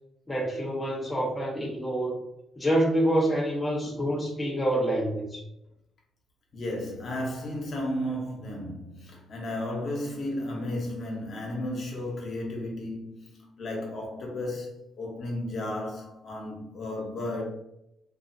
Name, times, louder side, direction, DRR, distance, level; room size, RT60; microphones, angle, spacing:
voice 1, 0.3-2.2 2.6-5.4, right 1 dB, 15° left, 0.6 m, -27 dB
voice 2, 6.5-14.7 15.0-17.5, left 1 dB, 55° left, 0.9 m, -33 dB
2.7 x 2.4 x 2.7 m
cardioid pair, 90°, 0 cm